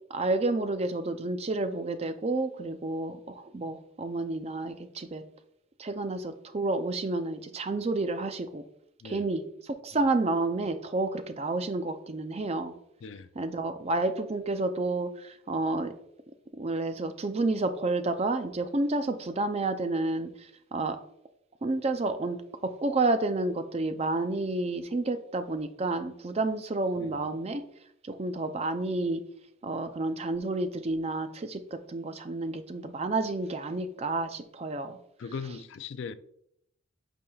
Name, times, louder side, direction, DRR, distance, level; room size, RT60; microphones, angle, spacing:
voice 1, 0.1-5.2 5.8-8.6 9.0-12.7 13.4-15.9 16.5-21.0 21.6-27.6 28.0-29.2 29.6-35.0, right 2 dB, 30° right, 0.4 m, -30 dB
voice 2, 9.0-9.3 9.9-10.0 13.0-13.3 27.0-27.3 35.2-36.1, left 5 dB, 55° left, 0.3 m, -39 dB
8.4 x 5.4 x 2.3 m
head